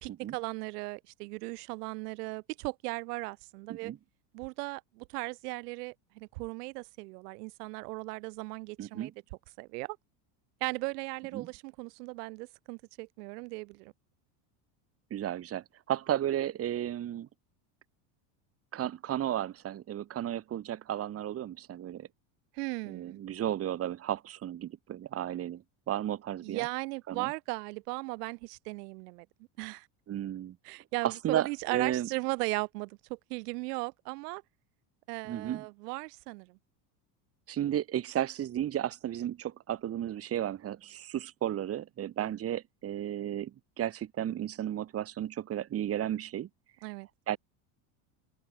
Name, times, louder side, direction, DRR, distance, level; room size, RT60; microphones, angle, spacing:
voice 1, 0.0-3.9 4.3-9.1 9.6-10.0 10.6-13.9 22.5-23.2 26.4-29.3 29.6-29.9 30.6-34.4 35.1-36.6 42.2-42.3 46.8-47.1, right 25 dB, 80° right, 3.7 m, -37 dB
voice 2, 8.8-9.1 11.3-11.5 15.1-17.3 18.7-22.1 22.9-26.7 27.1-27.3 30.1-30.6 31.0-32.1 35.3-35.6 37.5-43.5 43.8-46.5 47.3-47.4, right 11 dB, 30° right, 2.6 m, -33 dB
cardioid pair, 155°, 47 cm